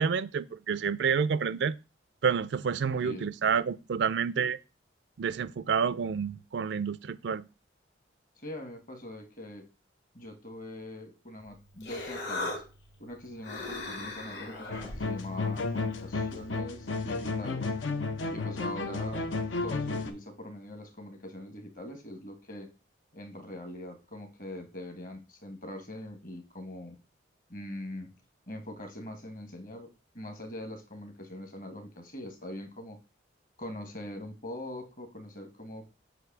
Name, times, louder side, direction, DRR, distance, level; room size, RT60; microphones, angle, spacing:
voice 1, 0.0-1.8 2.2-4.6 5.2-7.4, right 6 dB, 65° right, 0.4 m, -29 dB
voice 2, 2.9-3.3 8.4-9.7 10.1-12.6 13.0-17.7 18.3-19.2 19.6-22.7 23.1-27.0 27.5-28.1 28.5-33.0 33.6-35.9, left 1 dB, 45° left, 1.4 m, -42 dB
Human voice, 11.4-16.6, left 2 dB, 65° left, 2.0 m, -40 dB
sound 1, 14.7-20.1, left 3 dB, 80° left, 0.7 m, -32 dB
7.8 x 2.7 x 6.0 m
head